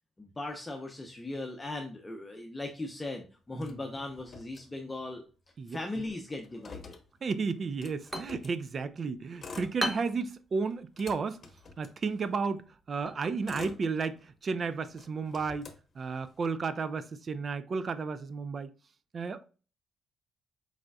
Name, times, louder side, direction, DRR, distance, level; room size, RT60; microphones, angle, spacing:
voice 1, 0.2-5.2 5.7-7.0, left 2 dB, 15° left, 0.7 m, -38 dB
Motor vehicle (road), 3.6-5.2 5.5-5.6 5.8-8.6 9.2-10.3 10.7-12.5 13.1-14.5 14.9-16.5, left 4 dB, 40° left, 0.9 m, -48 dB
voice 2, 7.2-11.4 11.8-18.7 19.1-19.4, right 4 dB, 45° right, 0.5 m, -33 dB
sound 1, 7.8-15.2, right 1 dB, 20° right, 0.8 m, -42 dB
4.8 x 3.8 x 2.3 m
cardioid pair, 90°, 0 cm